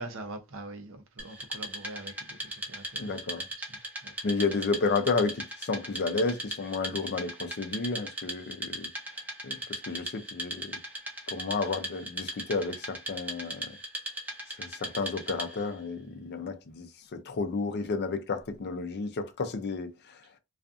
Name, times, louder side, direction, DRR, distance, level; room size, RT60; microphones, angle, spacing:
voice 1, 0.0-3.1 3.6-3.7 4.0-4.1, right 2 dB, 65° right, 0.6 m, -43 dB
Wood, 1.2-15.7, right 1 dB, 10° right, 0.6 m, -39 dB
voice 2, 3.0-3.5 4.2-8.9 9.4-10.8 11.3-13.8 14.6-20.2, left 4 dB, 50° left, 0.4 m, -32 dB
2.5 x 2.4 x 2.4 m
head